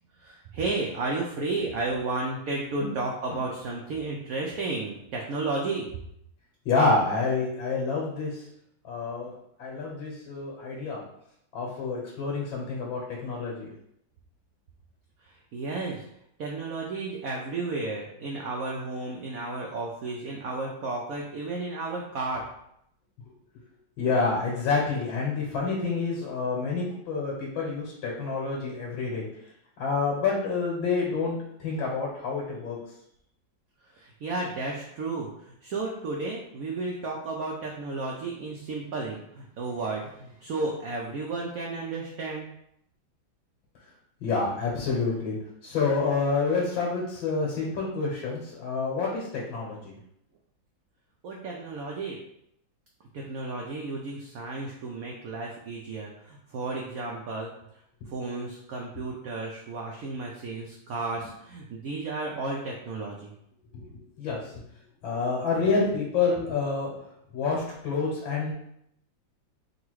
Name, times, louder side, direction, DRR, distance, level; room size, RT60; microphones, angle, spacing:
voice 1, 0.2-5.9 15.3-16.0 16.4-22.5 33.9-42.5 51.2-52.2 53.1-57.5 58.1-63.3, right 3 dB, 70° right, -1 dB, 0.8 m, -33 dB
voice 2, 6.7-8.4 8.8-9.3 9.6-11.0 11.5-13.7 24.0-29.3 29.8-32.8 44.2-45.4 45.6-50.0 63.7-64.6 65.0-66.9 67.3-68.5, left 4 dB, 85° left, -3 dB, 1.8 m, -28 dB
3.9 x 2.4 x 4.6 m, 0.75 s
omnidirectional pair, 2.1 m